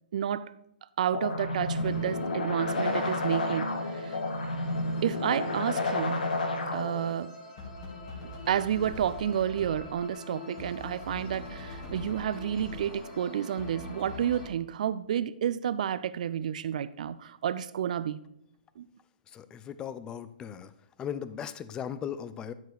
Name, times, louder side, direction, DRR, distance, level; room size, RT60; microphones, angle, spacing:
voice 1, 0.1-0.5 1.0-4.2 5.0-6.2 6.7-7.3 8.5-18.2 18.8-18.9, right 9 dB, 50° right, 0.4 m, -30 dB
sound 1, 1.1-7.1, left 2 dB, 60° left, 1.7 m, -31 dB
sound 2, 1.8-14.5, left 1 dB, 35° left, 2.5 m, -41 dB
voice 2, 19.3-20.7 21.0-22.5, left 8 dB, 15° left, 0.4 m, -37 dB
13.0 x 4.5 x 4.9 m
figure-of-eight pair, 120°, 5 cm